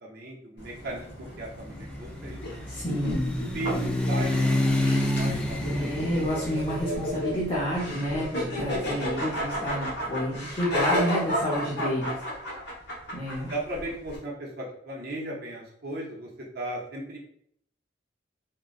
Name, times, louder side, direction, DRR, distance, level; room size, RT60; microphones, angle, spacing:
voice 1, 0.0-2.4 3.5-4.9 5.2-6.1 7.9-8.1 11.0-11.1 11.4-11.7 13.5-16.3 16.5-17.2, right 2 dB, 55° right, -3 dB, 0.6 m, -36 dB
sound 1, 0.6-14.2, equal, 60° left, 1.0 m, -33 dB
sound 2, 1.4-9.4, left 1 dB, 5° left, 0.3 m, -29 dB
voice 2, 2.7-3.3 5.6-12.2 13.1-13.5, equal, 25° left, -7 dB, 0.7 m, -29 dB
3.7 x 2.1 x 2.4 m, 0.68 s
head